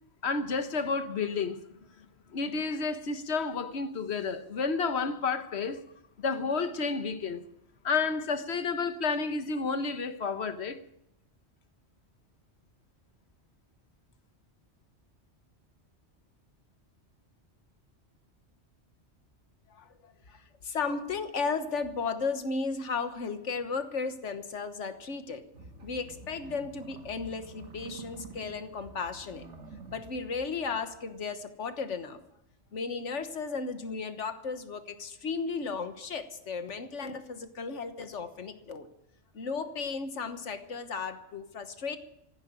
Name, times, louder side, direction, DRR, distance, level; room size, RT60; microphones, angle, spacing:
voice 1, 0.2-1.6 2.3-5.8 6.2-7.4 7.8-10.8, left 4 dB, 65° left, 1.3 m, -30 dB
voice 2, 19.7-25.4 25.8-29.5 29.9-32.2 32.7-38.9 39.3-42.0, left 4 dB, 90° left, 1.6 m, -35 dB
sound 1, 25.5-31.2, right 3 dB, 80° right, 1.9 m, -49 dB
15.5 x 10.0 x 8.9 m
omnidirectional pair, 1.2 m